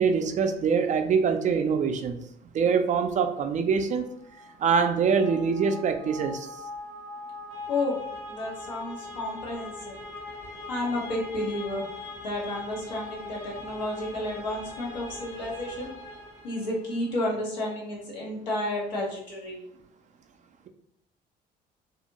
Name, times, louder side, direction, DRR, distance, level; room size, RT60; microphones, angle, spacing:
voice 1, 0.0-2.2 2.5-4.0 4.6-6.5, right 6 dB, 35° right, 7 dB, 0.4 m, -24 dB
sound 1, 4.2-17.0, left 2 dB, 55° left, 0.9 m, -41 dB
voice 2, 8.3-10.0 10.7-11.8 12.2-15.9 16.4-19.6, left 1 dB, 85° left, -3 dB, 0.8 m, -31 dB
2.4 x 2.4 x 2.8 m, 0.74 s
hypercardioid pair, 55°, 21 cm